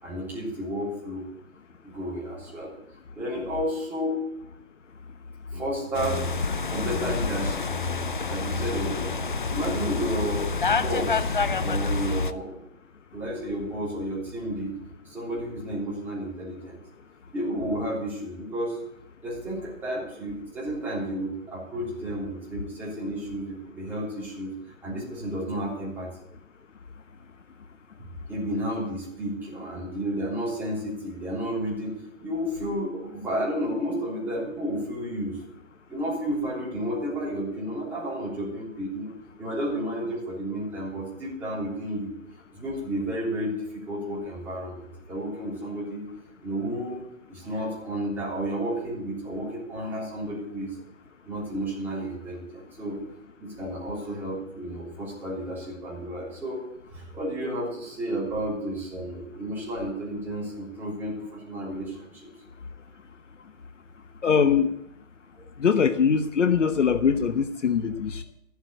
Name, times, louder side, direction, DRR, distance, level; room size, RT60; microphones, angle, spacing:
voice 1, 0.0-1.2 1.8-2.7 3.1-4.3 5.5-7.7 8.3-9.2 9.5-12.6 13.1-14.7 15.1-16.8 17.3-18.8 19.2-24.5 24.8-26.1 28.3-35.4 35.9-39.1 39.4-42.1 42.5-46.1 46.4-47.0 47.3-50.8 51.2-53.0 53.4-56.6 56.9-62.3, equal, 5° right, -8 dB, 3.5 m, -32 dB
sound 1, 5.9-12.3, left 4 dB, 40° left, 0.5 m, -27 dB
voice 2, 64.2-64.7 65.6-68.2, left 6 dB, 60° left, 10 dB, 1.1 m, -22 dB
14.5 x 8.1 x 8.1 m, 0.77 s
hypercardioid pair, 170°, 41 cm